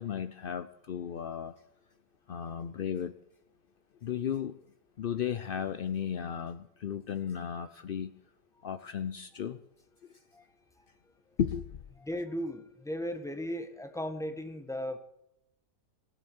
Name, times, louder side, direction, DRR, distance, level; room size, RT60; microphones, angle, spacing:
voice 1, 0.0-1.5 2.3-3.1 4.0-4.5 5.0-8.2 8.6-9.6 11.4-11.7, left 8 dB, 75° left, 11 dB, 0.5 m, -34 dB
voice 2, 12.0-15.0, equal, ahead, 6 dB, 1.3 m, -36 dB
19.0 x 8.1 x 7.9 m, 0.81 s
omnidirectional pair, 1.7 m